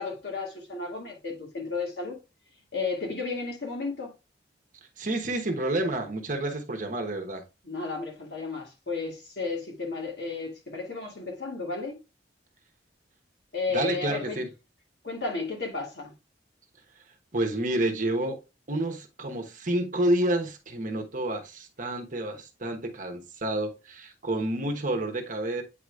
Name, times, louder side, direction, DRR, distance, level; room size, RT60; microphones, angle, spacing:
voice 1, 0.0-2.2 2.7-4.1 7.6-12.0 13.5-14.4 15.0-16.1, left 4 dB, 60° left, 2.2 m, -33 dB
voice 2, 5.0-7.4 13.7-14.4 17.3-18.4 18.7-25.6, right 1 dB, 45° right, 1.1 m, -29 dB
8.5 x 4.9 x 2.4 m
head